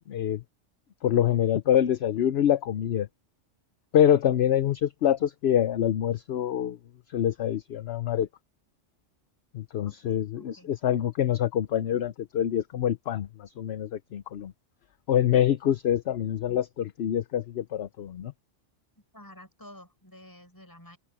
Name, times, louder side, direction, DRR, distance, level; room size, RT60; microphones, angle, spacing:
voice 1, 0.1-0.4 1.0-3.1 3.9-6.8 7.1-8.3 9.5-14.5 15.1-18.3, left 10 dB, 60° left, 0.9 m, -25 dB
voice 2, 9.8-10.7 18.9-21.0, left 1 dB, 15° left, 6.7 m, -50 dB
omnidirectional pair, 1.3 m